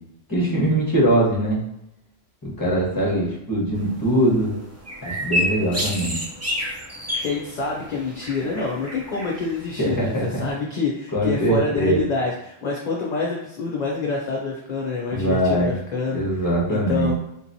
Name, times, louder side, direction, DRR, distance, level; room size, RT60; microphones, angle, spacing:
voice 1, 0.3-1.6 2.4-4.5 5.0-6.2 9.8-10.4 11.1-12.1 15.1-15.7 16.1-17.1, right 1 dB, 20° left, -5 dB, 1.1 m, -22 dB
sound 1, 3.8-10.5, left 1 dB, 20° right, 0.5 m, -30 dB
voice 2, 7.2-17.1, left 4 dB, 45° left, -2 dB, 0.7 m, -27 dB
3.7 x 2.9 x 2.6 m, 0.83 s
omnidirectional pair, 1.1 m